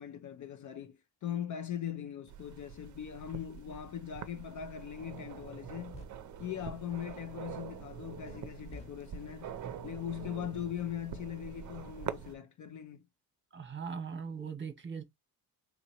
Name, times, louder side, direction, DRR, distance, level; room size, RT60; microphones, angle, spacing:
voice 1, 0.0-6.0 6.4-9.5 9.8-13.0, left 10 dB, 50° left, 0.5 m, -40 dB
sound 1, 2.3-12.4, right 8 dB, 50° right, 0.6 m, -45 dB
sound 2, 5.5-5.6 5.9-6.1 8.2-8.4 8.7-8.9, left 1 dB, 15° left, 1.0 m, -48 dB
voice 2, 13.5-15.0, right 6 dB, 30° right, 1.0 m, -40 dB
3.8 x 2.9 x 2.8 m
cardioid pair, 120°, 39 cm